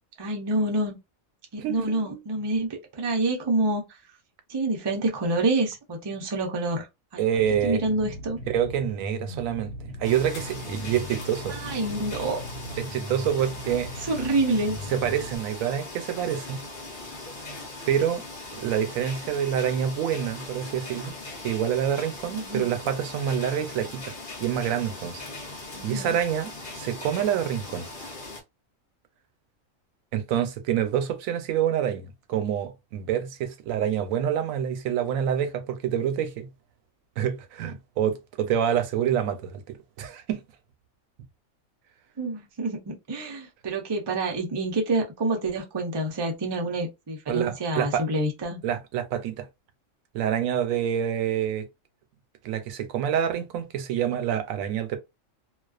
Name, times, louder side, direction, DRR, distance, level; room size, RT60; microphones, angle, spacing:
voice 1, 0.2-1.0 1.5-4.0 4.5-6.9 7.1-7.3 7.6-8.4 11.5-12.4 14.0-14.8 22.3-22.7 25.7-26.2 42.2-48.6, right 2 dB, 35° right, 0.4 m, -27 dB
voice 2, 1.6-2.2 7.2-7.8 8.5-9.7 10.0-11.6 12.8-13.9 14.9-16.6 17.9-18.2 18.5-21.1 21.4-24.1 24.4-25.2 25.8-26.5 26.8-27.9 30.1-36.5 37.2-40.4 47.3-48.0 48.6-49.5 50.1-51.7 52.4-55.0, right 9 dB, 90° right, 1.0 m, -27 dB
sound 1, 7.4-15.4, equal, 60° right, 0.8 m, -39 dB
sound 2, 10.0-28.4, left 2 dB, 45° left, 0.8 m, -40 dB
2.3 x 2.3 x 2.3 m
omnidirectional pair, 1.4 m